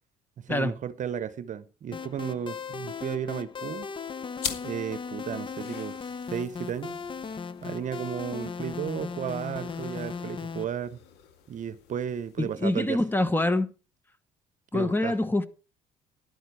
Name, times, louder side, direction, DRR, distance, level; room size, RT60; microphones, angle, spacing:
voice 1, 0.4-3.9 4.6-7.0 7.6-11.0 11.5-13.0 14.7-15.2, right 8 dB, 50° right, 0.9 m, -34 dB
sound 1, 1.9-10.6, left 5 dB, 30° left, 0.8 m, -37 dB
sound 2, 4.3-13.3, left 9 dB, 85° left, 2.1 m, -44 dB
voice 2, 12.4-13.7 14.7-15.5, left 2 dB, 10° left, 1.3 m, -25 dB
13.5 x 11.0 x 4.8 m
cardioid pair, 110°, 17 cm